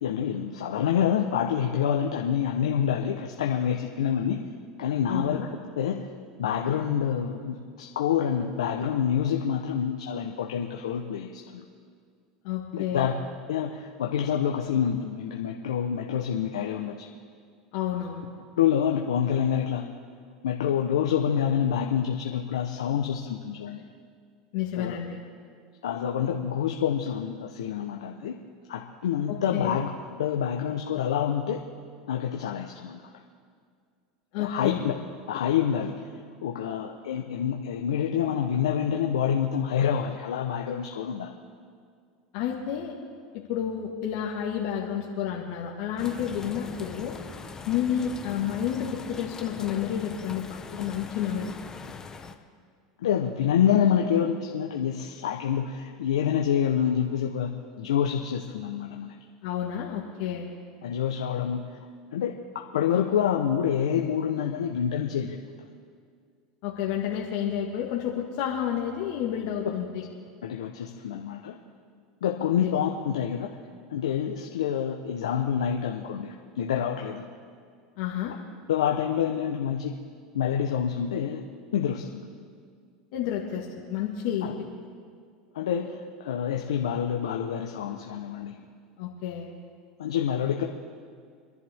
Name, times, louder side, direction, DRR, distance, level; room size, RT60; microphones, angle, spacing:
voice 1, 0.0-4.4 4.8-5.4 5.8-6.1 6.4-11.7 12.7-13.1 13.5-17.1 18.6-19.9 20.4-23.8 24.8-25.0 25.8-28.4 28.7-29.9 30.2-31.6 32.1-33.0 34.4-34.9 35.3-36.0 36.4-41.3 53.0-57.5 57.8-59.1 60.8-61.9 62.1-65.4 70.4-71.6 72.2-73.5 73.9-77.3 78.7-80.0 80.3-81.4 81.7-82.2 84.4-84.5 85.5-88.6 90.0-90.6, left 8 dB, 85° left, 2 dB, 0.9 m, -27 dB
voice 2, 5.1-5.5 12.4-13.1 17.7-18.3 24.5-25.2 29.3-29.8 34.3-34.8 42.3-43.0 43.3-47.1 47.7-51.5 59.4-60.5 66.6-70.0 72.6-72.7 78.0-78.3 83.1-84.7 89.0-89.5, left 9 dB, 65° left, -2 dB, 1.7 m, -30 dB
sound 1, 46.0-52.4, left 4 dB, 20° left, 1.0 m, -41 dB
25.5 x 11.0 x 3.6 m, 2.1 s
hypercardioid pair, 100°, 3 cm